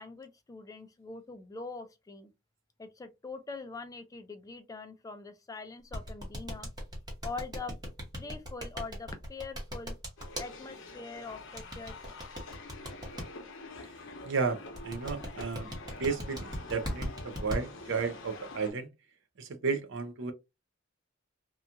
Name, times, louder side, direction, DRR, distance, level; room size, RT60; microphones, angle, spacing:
voice 1, 0.0-2.3 2.8-6.7 7.2-7.7 8.2-9.9 10.4-12.2, left 4 dB, 15° left, 0.3 m, -43 dB
sound 1, 5.9-10.5 11.6-13.2 14.7-17.6, equal, 20° right, 0.9 m, -37 dB
sound 2, 10.2-18.7, left 2 dB, 65° left, 0.7 m, -47 dB
voice 2, 14.2-15.7 16.0-18.9 19.4-20.3, right 5 dB, 65° right, 0.5 m, -33 dB
2.8 x 2.3 x 2.4 m
head